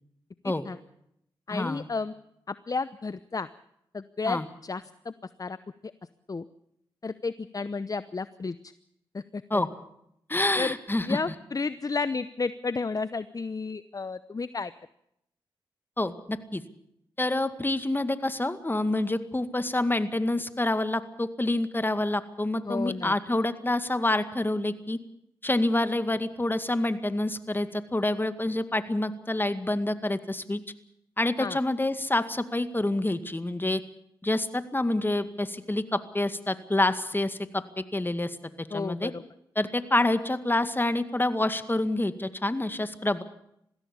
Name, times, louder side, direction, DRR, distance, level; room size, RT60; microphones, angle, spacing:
voice 1, 0.4-0.8 1.5-2.1 2.5-3.5 3.9-5.1 5.4-5.6 6.3-6.4 7.0-8.7 9.1-9.6 10.6-10.7 11.1-14.7 22.6-23.1 31.4-31.6 38.7-39.2, left 4 dB, 40° left, 15 dB, 0.8 m, -32 dB
voice 2, 1.5-1.8 4.3-4.4 9.5-9.7 10.3-11.2 16.0-16.6 17.2-25.0 25.4-30.6 31.2-33.8 34.2-39.1 39.6-43.2, left 2 dB, 20° left, 11 dB, 2.1 m, -27 dB
21.5 x 16.0 x 8.5 m, 0.76 s
supercardioid pair, 40°, 10 cm